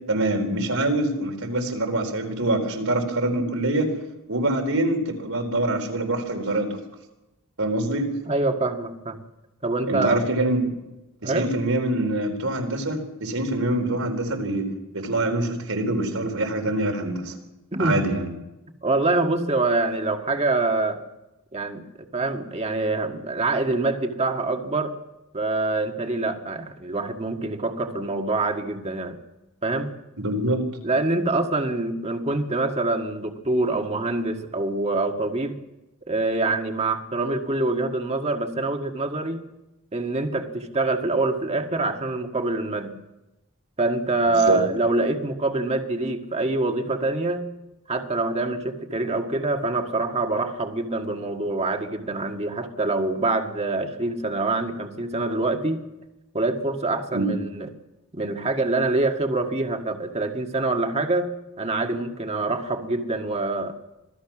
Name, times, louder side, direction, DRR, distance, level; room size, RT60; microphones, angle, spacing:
voice 1, 0.1-3.9 4.3-6.8 7.6-8.0 9.9-10.6 11.2-14.7 14.9-17.3 17.8-18.3 30.2-30.6 44.5-44.6 57.1-57.3, right 1 dB, 80° right, 4 dB, 4.1 m, -25 dB
voice 2, 8.3-9.2 9.6-10.2 11.2-11.5 17.7-18.0 18.8-21.0 21.5-24.9 25.3-29.2 29.6-29.9 30.8-35.6 36.1-39.4 39.9-43.0 43.8-47.5 47.9-55.8 56.3-57.7 58.1-63.7, right 2 dB, 30° right, 4 dB, 1.7 m, -25 dB
26.0 x 18.0 x 6.1 m, 0.99 s
head